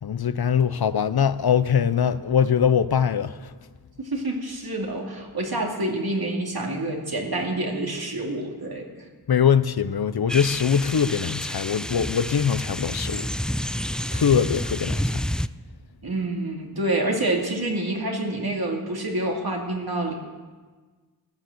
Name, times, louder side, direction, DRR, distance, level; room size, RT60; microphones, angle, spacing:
voice 1, 0.0-3.5 9.3-13.3 14.1-15.2, left 7 dB, 75° left, 0.7 m, -22 dB
voice 2, 4.0-8.9 16.0-20.1, right 2 dB, 70° right, 2.7 m, -27 dB
sound 1, 10.3-15.5, equal, ahead, 0.4 m, -29 dB
14.5 x 10.0 x 7.9 m
wide cardioid pair, 45°, 38 cm